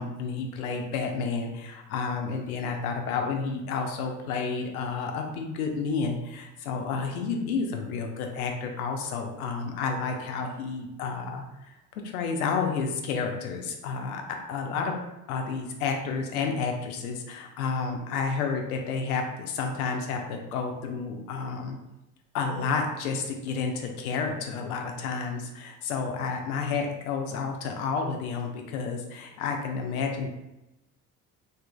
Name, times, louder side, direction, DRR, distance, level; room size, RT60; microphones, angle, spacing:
voice 1, 0.0-11.4 12.0-14.2 14.5-14.9 15.3-21.8 22.3-30.3, left 5 dB, 75° left, 3 dB, 0.5 m, -30 dB
2.7 x 2.5 x 2.2 m, 0.94 s
figure-of-eight pair, 50°, 44 cm